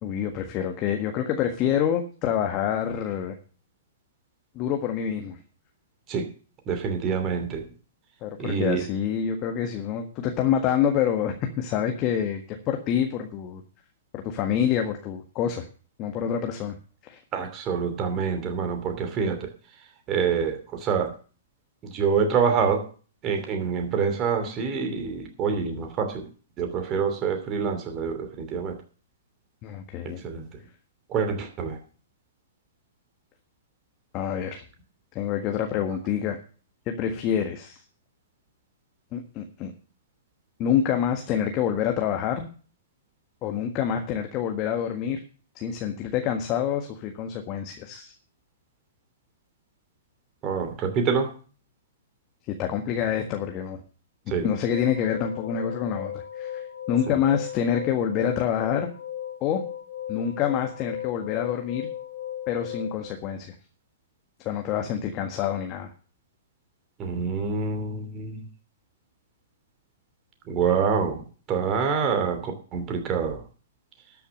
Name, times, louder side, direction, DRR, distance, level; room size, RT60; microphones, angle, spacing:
voice 1, 0.0-3.3 4.5-5.4 8.2-13.6 14.1-15.7 16.0-16.8 17.0-17.2 29.6-30.2 34.1-34.6 35.1-36.4 36.9-37.8 39.1-39.7 40.6-42.5 43.4-45.2 45.5-48.1 52.6-53.8 54.3-58.9 59.4-59.6 60.1-61.9 62.5-63.5 64.4-65.9, left 9 dB, 35° left, 4 dB, 1.6 m, -27 dB
voice 2, 6.7-7.6 8.4-8.8 17.3-19.5 20.1-21.1 21.9-22.8 23.2-26.2 26.6-28.8 30.2-30.4 31.1-31.8 50.4-51.3 54.3-54.5 67.0-68.4 70.5-71.2 71.5-73.4, right 6 dB, 30° right, 5 dB, 2.8 m, -26 dB
sound 1, 54.7-63.1, left 10 dB, 75° left, 3.0 m, -36 dB
13.0 x 6.8 x 6.5 m, 0.39 s
hypercardioid pair, 115°, 0 cm